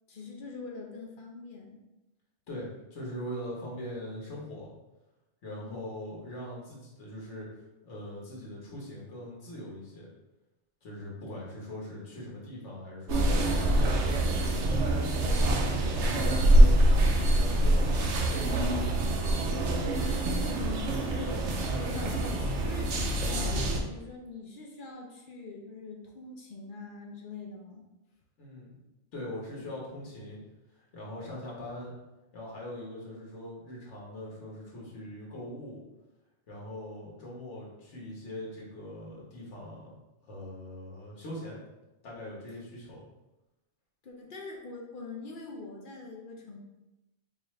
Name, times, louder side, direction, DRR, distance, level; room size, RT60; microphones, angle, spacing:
voice 1, 0.1-1.8 5.6-6.0 19.9-21.5 21.7-27.9 44.0-46.6, left 3 dB, 55° left, 0 dB, 0.7 m, -43 dB
voice 2, 2.5-4.7 5.4-7.5 7.8-10.1 10.8-14.6 15.1-18.8 28.4-28.8 29.1-30.4 30.7-31.9 32.3-35.8 36.5-40.0 40.2-41.6 42.0-43.0, left 1 dB, 75° left, -4 dB, 1.5 m, -42 dB
sound 1, 13.1-23.8, right 1 dB, 80° right, 0.9 m, -25 dB
4.7 x 2.4 x 3.1 m, 1.0 s
omnidirectional pair, 1.2 m